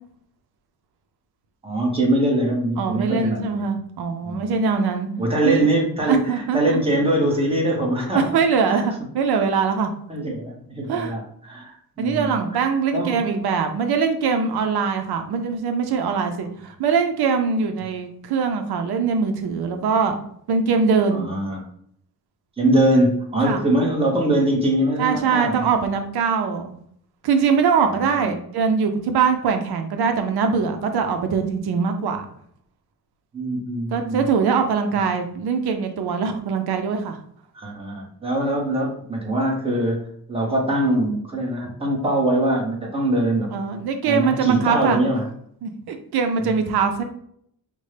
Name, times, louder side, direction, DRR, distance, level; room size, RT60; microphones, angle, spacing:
voice 1, 1.6-3.6 4.2-4.5 5.2-8.3 8.7-8.8 10.1-12.6 12.9-13.2 21.1-21.6 22.6-25.7 27.8-28.3 33.3-34.3 37.5-43.5 44.0-45.3 46.4-46.5, right 1 dB, 15° right, -1 dB, 0.9 m, -23 dB
voice 2, 2.8-5.1 5.4-5.6 6.1-6.8 8.1-9.9 10.9-11.1 12.0-20.1 20.5-21.2 23.4-23.6 25.0-26.7 27.2-32.3 33.9-37.2 43.5-45.0 45.6-47.0, right 5 dB, 80° right, 6 dB, 0.6 m, -22 dB
5.2 x 2.1 x 3.2 m, 0.66 s
wide cardioid pair, 145°, 38 cm